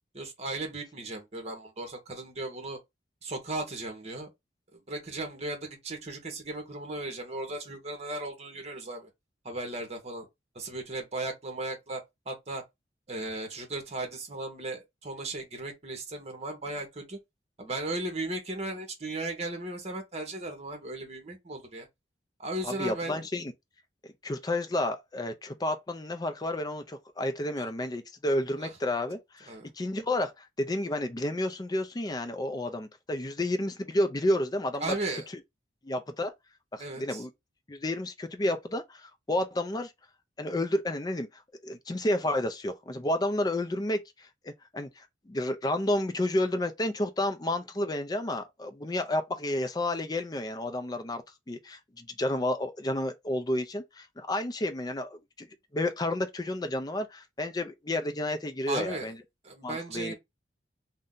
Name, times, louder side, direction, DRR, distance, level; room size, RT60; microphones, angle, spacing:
voice 1, 0.1-2.8 3.2-4.3 4.7-9.1 9.4-10.3 10.5-12.6 13.1-17.2 17.6-21.9 22.4-23.3 27.6-27.7 28.6-28.7 29.5-29.7 34.8-35.2 36.8-37.2 58.7-59.1 59.4-60.2, right 2 dB, 35° right, 1.0 m, -36 dB
voice 2, 22.6-23.5 24.0-35.2 35.8-36.3 36.7-37.3 37.7-39.9 40.4-55.5 55.7-59.1 59.6-60.2, left 1 dB, 20° left, 0.4 m, -31 dB
2.6 x 2.2 x 3.7 m
head